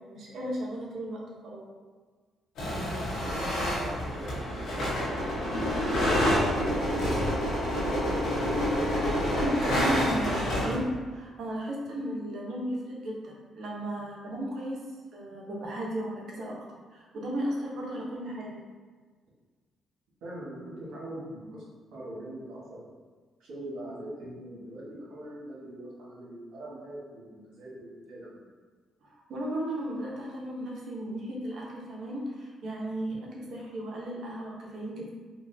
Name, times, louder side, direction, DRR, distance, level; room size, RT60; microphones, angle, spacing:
voice 1, 0.0-1.7 9.3-14.8 15.1-16.6 16.9-18.6 29.0-35.1, right 1 dB, 70° right, -3 dB, 0.8 m, -35 dB
sound 1, 2.6-10.7, equal, 80° left, 1.3 m, -28 dB
voice 2, 3.2-5.4 5.7-8.1 20.2-21.6 21.9-22.9 23.4-28.4, right 1 dB, 85° right, -6 dB, 1.3 m, -42 dB
4.5 x 2.3 x 2.7 m, 1.4 s
cardioid pair, 90°, 0 cm